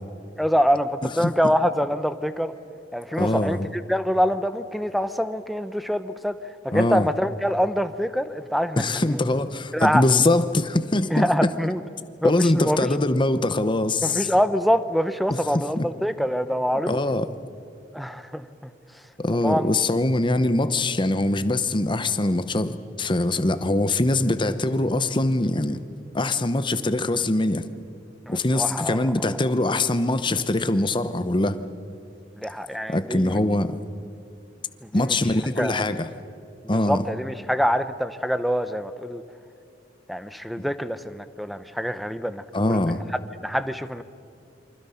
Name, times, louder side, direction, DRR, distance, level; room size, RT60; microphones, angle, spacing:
voice 1, 0.4-2.5 2.9-6.4 6.6-8.8 9.1-9.2 9.7-10.1 11.1-11.8 12.2-12.9 14.0-17.0 17.9-18.7 19.4-19.7 28.3-29.3 32.4-33.4 34.8-35.1 35.6-35.9 36.6-39.2 40.1-43.0 43.4-44.0, equal, ahead, 11 dB, 0.8 m, -25 dB
voice 2, 3.2-3.7 6.7-7.1 8.8-11.5 12.2-14.3 15.3-15.9 16.9-17.3 19.2-25.8 26.1-27.7 28.3-31.6 32.9-33.7 34.9-36.1 36.7-37.0 40.6-40.7 42.5-43.0, left 2 dB, 25° left, 11 dB, 0.9 m, -23 dB
28.0 x 24.5 x 5.8 m, 2.4 s
head